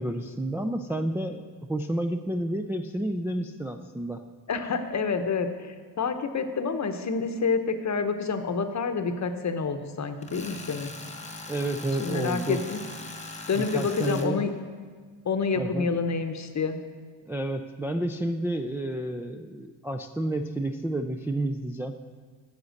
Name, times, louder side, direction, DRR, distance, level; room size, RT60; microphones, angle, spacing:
voice 1, 0.0-1.4 1.7-4.2 11.5-12.6 13.5-14.4 15.5-15.9 17.3-22.0, right 1 dB, 5° right, 4 dB, 0.3 m, -30 dB
voice 2, 4.5-10.9 12.0-12.8 13.5-14.5 15.2-16.8, left 5 dB, 40° left, 8 dB, 0.9 m, -28 dB
Tools, 10.2-14.3, left 2 dB, 15° left, 1.2 m, -40 dB
8.0 x 7.1 x 6.5 m, 1.5 s
cardioid pair, 70°, 44 cm